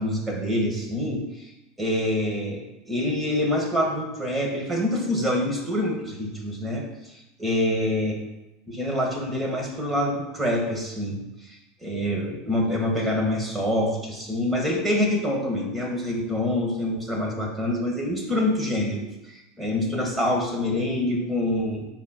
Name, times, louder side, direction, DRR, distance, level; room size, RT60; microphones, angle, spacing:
voice 1, 0.0-1.5 1.8-7.1 7.4-8.2 8.7-21.9, left 1 dB, 15° right, -1 dB, 1.6 m, -26 dB
5.1 x 4.2 x 4.4 m, 0.96 s
supercardioid pair, 105°, 0 cm